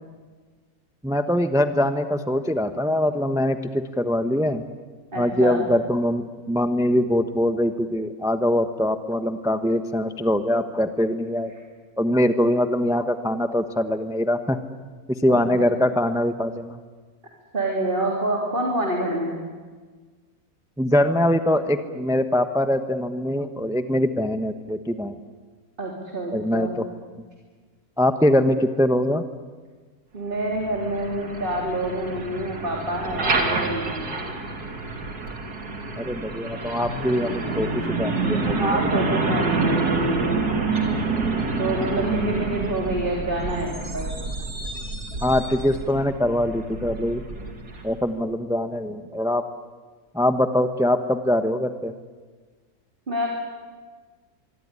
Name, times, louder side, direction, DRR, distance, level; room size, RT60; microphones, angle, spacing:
voice 1, 1.0-4.6 5.2-11.5 12.0-14.6 15.1-16.8 20.8-25.2 26.3-26.8 28.0-29.2 36.0-38.5 45.2-47.2 47.8-49.4 50.1-51.9, left 1 dB, 5° right, 9 dB, 0.9 m, -23 dB
voice 2, 5.1-5.6 15.3-15.7 17.5-19.3 25.8-26.8 30.1-34.2 38.5-40.4 41.6-44.1 53.1-53.3, right 1 dB, 35° right, 0 dB, 3.6 m, -27 dB
Truck, 30.3-48.0, right 3 dB, 80° right, 3.2 m, -28 dB
24.5 x 24.5 x 9.8 m, 1.4 s
omnidirectional pair, 1.6 m